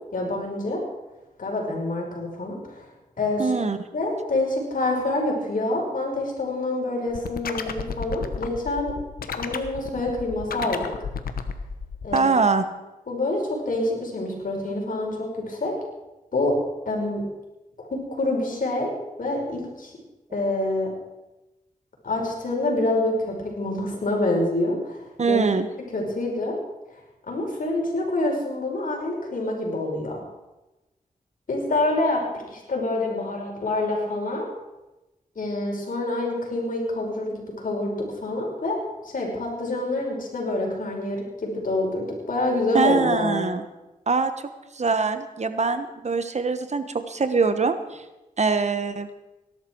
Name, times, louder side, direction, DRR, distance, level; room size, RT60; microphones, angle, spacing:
voice 1, 0.1-0.8 1.4-2.9 3.2-3.6 3.9-8.9 9.4-10.8 12.0-12.3 13.1-15.7 16.3-16.6 16.9-17.2 17.8-18.9 19.2-19.9 20.3-20.9 22.0-25.5 25.9-26.6 27.3-30.2 31.5-34.5 35.4-38.8 39.0-43.5, left 2 dB, 65° left, 0 dB, 5.2 m, -26 dB
voice 2, 3.4-3.8 12.1-12.6 25.2-25.7 42.7-43.6 44.1-44.3 44.7-48.0 48.4-49.1, right 4 dB, 50° right, 10 dB, 1.3 m, -23 dB
sound 1, 7.1-12.2, left 6 dB, 90° left, 1.1 m, -32 dB
18.5 x 12.0 x 4.7 m, 1.0 s
cardioid pair, 60°, 15 cm